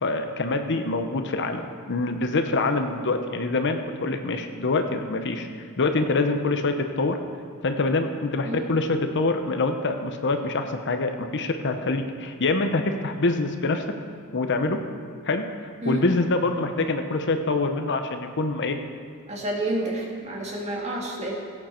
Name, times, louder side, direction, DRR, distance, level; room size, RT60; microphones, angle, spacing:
voice 1, 0.0-5.5 5.8-7.2 7.6-13.8 14.3-14.8 15.2-15.4 15.9-18.8, left 3 dB, 55° left, 6 dB, 0.8 m, -25 dB
voice 2, 19.3-21.3, right 1 dB, 30° right, -1 dB, 2.0 m, -29 dB
17.0 x 8.5 x 4.4 m, 2.2 s
head